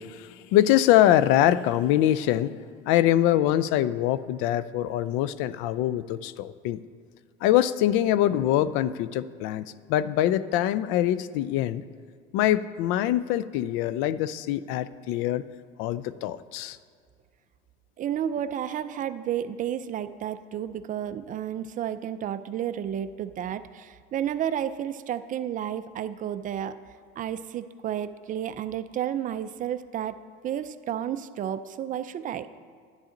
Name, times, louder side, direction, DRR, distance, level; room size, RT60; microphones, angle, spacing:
voice 1, 0.0-6.8 7.4-11.8 12.3-15.4 15.8-16.8, left 12 dB, 75° left, 15 dB, 0.5 m, -24 dB
voice 2, 18.0-26.7 27.2-30.2 30.4-32.5, right 10 dB, 40° right, 12 dB, 0.5 m, -31 dB
10.5 x 9.9 x 3.8 m, 2.1 s
supercardioid pair, 115°, 21 cm